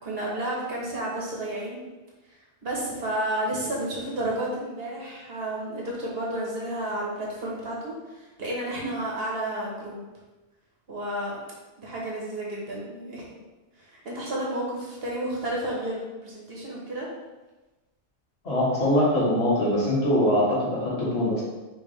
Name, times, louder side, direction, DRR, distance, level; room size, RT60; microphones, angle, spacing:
voice 1, 0.0-1.8 2.6-10.0 10.9-11.4 11.8-13.4 13.8-17.1, right 1 dB, 60° right, -4 dB, 1.3 m, -31 dB
voice 2, 18.4-21.4, left 1 dB, 65° left, -7 dB, 1.8 m, -23 dB
5.1 x 3.2 x 3.2 m, 1.1 s
omnidirectional pair, 1.2 m